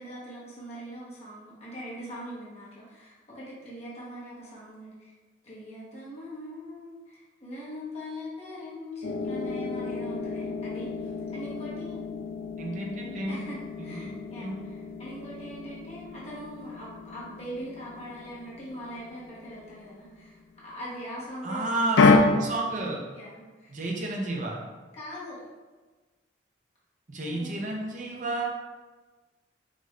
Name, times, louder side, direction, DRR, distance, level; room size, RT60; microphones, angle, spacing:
voice 1, 0.0-5.1 5.4-12.0 13.3-13.6 13.8-22.1 23.1-23.7 24.9-25.4 27.2-27.6, equal, 35° left, -8 dB, 1.0 m, -41 dB
sound 1, 9.0-20.5 22.0-22.2, left 4 dB, 90° left, 0.4 m, -30 dB
voice 2, 12.6-13.4 13.8-14.1 14.4-14.6 21.4-23.0 23.7-24.6 27.1-28.4, right 2 dB, 40° right, -1 dB, 0.7 m, -31 dB
5.2 x 2.5 x 3.2 m, 1.3 s
head